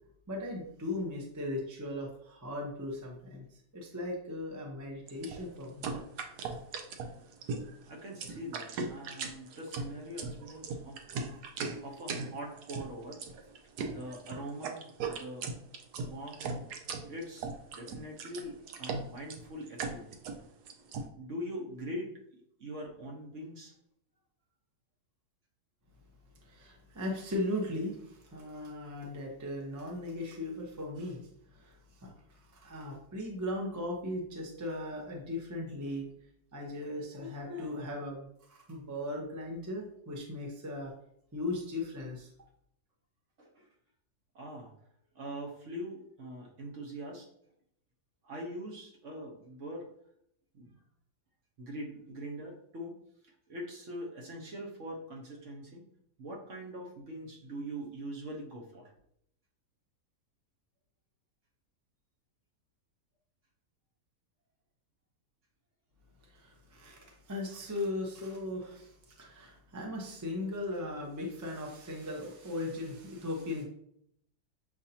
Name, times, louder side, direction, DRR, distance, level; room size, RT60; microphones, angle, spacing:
voice 1, 0.3-5.9 26.4-31.2 31.5-36.1 36.5-40.9 41.3-42.3 66.3-73.6, left 1 dB, 20° right, -1 dB, 0.6 m, -38 dB
sound 1, 5.1-21.1, right 4 dB, 80° right, 1.2 m, -38 dB
voice 2, 7.8-11.4 11.8-13.2 13.8-15.5 16.0-16.4 17.1-17.5 17.8-20.1 21.2-23.7 43.4-43.7 44.3-44.7 45.1-47.3 48.2-49.9 50.5-50.7 51.6-55.8 56.2-58.9, equal, 55° right, -1 dB, 1.2 m, -43 dB
7.2 x 2.7 x 2.8 m, 0.70 s
omnidirectional pair, 1.7 m